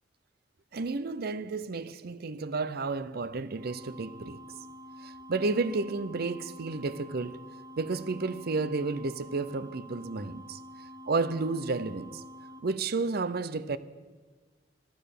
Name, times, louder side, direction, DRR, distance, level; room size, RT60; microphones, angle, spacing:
voice 1, 0.7-4.4 5.0-7.4 7.8-10.6 11.1-12.2 12.6-13.8, right 3 dB, 55° right, 0.6 m, -31 dB
sound 1, 3.6-12.6, equal, 30° right, 1.3 m, -47 dB
13.5 x 12.0 x 6.7 m
head